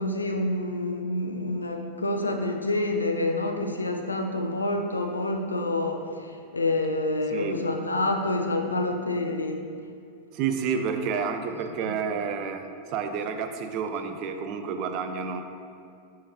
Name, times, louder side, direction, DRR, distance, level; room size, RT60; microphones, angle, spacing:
voice 1, 0.0-9.6 11.8-11.9, left 2 dB, 80° left, 4 dB, 0.5 m, -28 dB
voice 2, 10.3-15.4, right 6 dB, 40° right, 7 dB, 0.4 m, -30 dB
6.2 x 5.6 x 2.9 m, 2.3 s
figure-of-eight pair, 90°, 0 cm